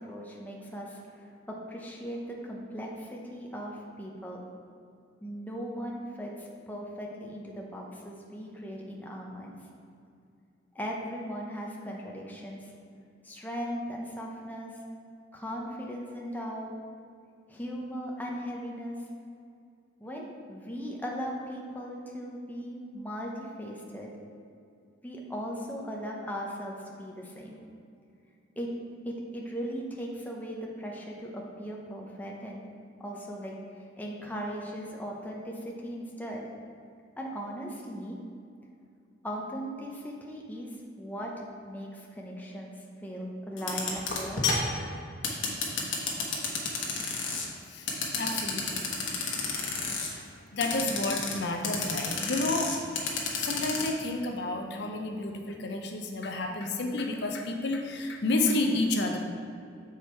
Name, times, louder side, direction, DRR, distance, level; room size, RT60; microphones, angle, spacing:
voice 1, 0.0-4.4 5.2-9.6 10.7-12.7 13.2-14.7 15.3-16.7 17.5-19.0 20.0-24.1 25.0-27.6 28.6-28.7 29.0-32.6 33.0-36.5 37.2-38.2 39.2-42.7 43.0-44.5, equal, 10° left, -2 dB, 0.7 m, -38 dB
sound 1, 43.6-47.5 47.9-50.1 50.6-51.4 51.6-53.9, left 5 dB, 75° left, 1.1 m, -30 dB
voice 2, 48.2-48.8 50.1-52.7 53.4-59.2, left 2 dB, 60° left, 3 dB, 0.6 m, -30 dB
7.2 x 4.8 x 4.4 m, 2.5 s
head